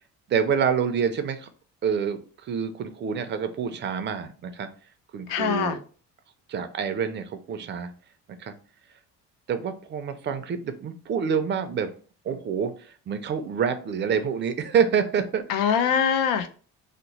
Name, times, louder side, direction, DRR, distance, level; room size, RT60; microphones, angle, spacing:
voice 1, 0.3-1.5 1.8-4.7 5.1-5.8 6.5-7.9 8.4-8.5 9.5-11.9 12.2-12.7 13.1-15.8, right 7 dB, 35° right, 8 dB, 0.4 m, -27 dB
voice 2, 5.3-5.8 15.5-16.5, left 7 dB, 85° left, 9 dB, 0.6 m, -23 dB
2.9 x 2.0 x 4.0 m, 0.39 s
cardioid pair, 140°, 32 cm